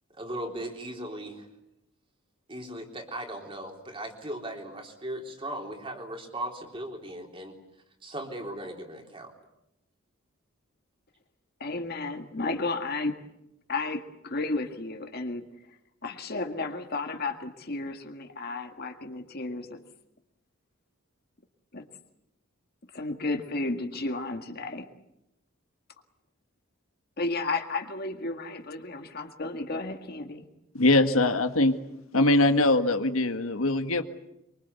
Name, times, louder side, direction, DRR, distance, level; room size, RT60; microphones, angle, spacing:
voice 1, 0.2-1.5 2.5-7.6 8.0-9.3, right 1 dB, 25° right, 2 dB, 3.7 m, -38 dB
voice 2, 11.6-13.1 13.7-15.4 16.0-19.8 21.7-21.8 22.9-24.9 27.2-30.5, left 3 dB, 45° left, 6 dB, 1.8 m, -33 dB
voice 3, 30.7-31.8 32.1-34.0, left 2 dB, 75° left, 7 dB, 1.7 m, -22 dB
24.5 x 24.5 x 8.2 m, 0.85 s
head